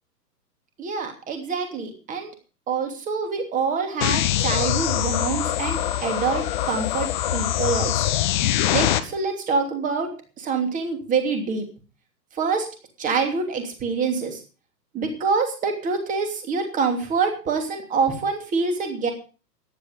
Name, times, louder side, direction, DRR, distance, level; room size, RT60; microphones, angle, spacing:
voice 1, 0.8-2.3 2.7-8.1 8.7-11.7 12.3-12.7 13.0-14.4 14.9-19.1, right 4 dB, 15° right, 5 dB, 2.9 m, -26 dB
sound 1, 4.0-9.0, left 13 dB, 30° left, 1.1 m, -23 dB
14.5 x 11.0 x 5.2 m, 0.36 s
figure-of-eight pair, 120°, 49 cm